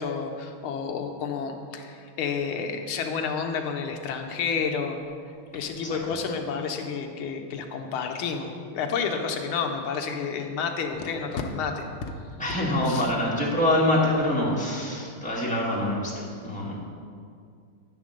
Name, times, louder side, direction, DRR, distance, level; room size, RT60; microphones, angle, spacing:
voice 1, 0.0-5.0 5.5-11.9 12.9-13.1, left 5 dB, 80° left, 4 dB, 1.5 m, -30 dB
voice 2, 12.4-16.7, left 1 dB, 5° left, -5 dB, 0.9 m, -25 dB
10.5 x 3.7 x 6.3 m, 2.3 s
omnidirectional pair, 2.4 m